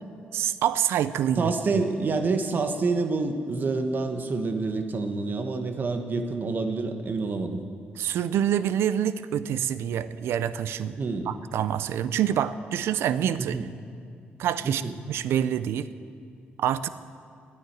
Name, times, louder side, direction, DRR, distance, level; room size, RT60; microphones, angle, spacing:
voice 1, 0.3-1.5 8.0-11.0 11.3-13.6 14.4-15.9 16.6-16.9, right 10 dB, 85° right, 15 dB, 0.5 m, -26 dB
voice 2, 1.4-7.6 11.0-11.3 13.4-13.7 14.6-14.9, right 3 dB, 50° right, 7 dB, 1.2 m, -27 dB
11.0 x 9.7 x 9.3 m, 2.4 s
cardioid pair, 85°, 4 cm